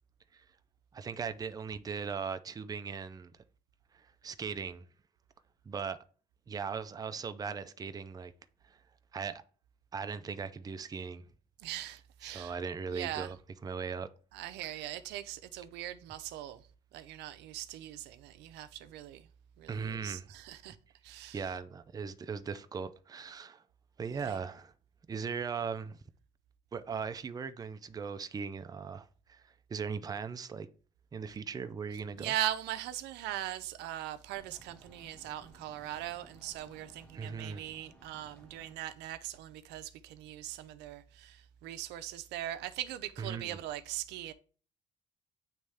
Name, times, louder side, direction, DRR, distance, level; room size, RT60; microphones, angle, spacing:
voice 1, 0.9-3.3 3.9-4.8 5.7-6.0 6.5-8.3 8.7-8.8 9.1-9.4 9.9-11.2 12.2-13.4 13.6-14.1 19.7-20.3 21.3-23.6 24.0-24.7 25.1-26.0 26.7-29.4 29.7-30.7 31.1-32.3 37.1-37.6 43.2-43.6, right 6 dB, 20° right, 0.5 m, -38 dB
voice 2, 11.6-12.6 12.9-13.3 14.3-16.6 16.9-19.3 19.6-20.8 21.0-21.5 24.2-24.4 32.2-44.3, right 13 dB, 85° right, 0.5 m, -40 dB
sound 1, 34.4-38.7, right 1 dB, 5° left, 1.3 m, -59 dB
9.0 x 3.2 x 3.4 m
cardioid pair, 110°, 17 cm